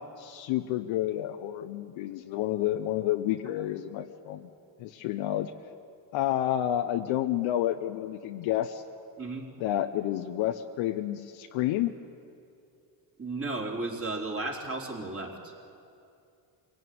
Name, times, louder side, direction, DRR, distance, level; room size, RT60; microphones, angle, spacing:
voice 1, 0.0-4.5 4.8-5.5 6.1-8.8 9.6-11.9, left 12 dB, 75° left, 6 dB, 1.0 m, -30 dB
voice 2, 13.2-15.5, right 2 dB, 30° right, -1 dB, 4.1 m, -34 dB
24.0 x 17.5 x 9.6 m, 2.5 s
supercardioid pair, 90°, 47 cm